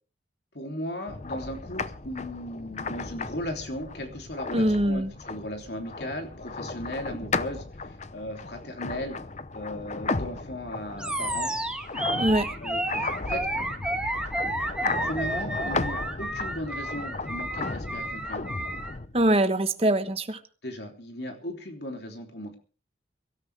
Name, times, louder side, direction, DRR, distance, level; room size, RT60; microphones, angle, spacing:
voice 1, 0.5-9.2 9.5-11.5 12.6-12.8 13.2-13.7 15.0-18.5 20.6-22.6, left 1 dB, 60° left, 3 dB, 3.3 m, -36 dB
sound 1, 1.1-19.4, left 3 dB, 35° left, 0.7 m, -35 dB
voice 2, 4.5-5.1 12.2-12.5 19.1-20.4, right 1 dB, 30° right, 9 dB, 1.3 m, -23 dB
Animal, 11.0-19.0, right 1 dB, 5° right, 1.5 m, -31 dB
23.5 x 13.0 x 3.5 m, 0.38 s
head